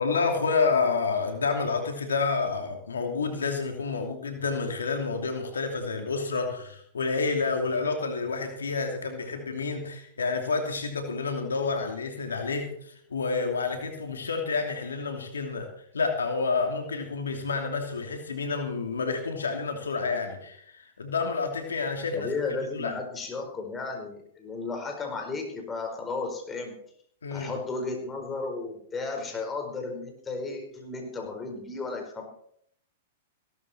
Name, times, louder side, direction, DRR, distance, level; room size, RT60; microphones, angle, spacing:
voice 1, 0.0-22.9 27.2-27.5, left 4 dB, 85° left, 4 dB, 2.8 m, -29 dB
voice 2, 22.1-26.8 27.3-32.3, left 3 dB, 20° left, 3 dB, 4.7 m, -34 dB
17.0 x 13.0 x 4.4 m, 0.66 s
hypercardioid pair, 110°, 0 cm